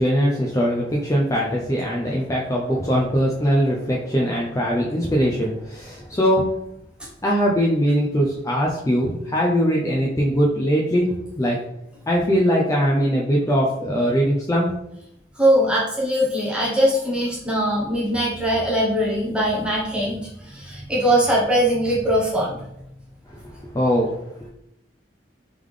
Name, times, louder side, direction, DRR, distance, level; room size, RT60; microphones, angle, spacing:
voice 1, 0.0-6.4 7.2-11.0 11.4-11.6 12.1-14.7 23.7-24.2, equal, 15° left, -3 dB, 0.4 m, -21 dB
voice 2, 15.4-22.7, equal, 5° right, -5 dB, 0.9 m, -21 dB
3.6 x 3.5 x 3.2 m, 0.81 s
head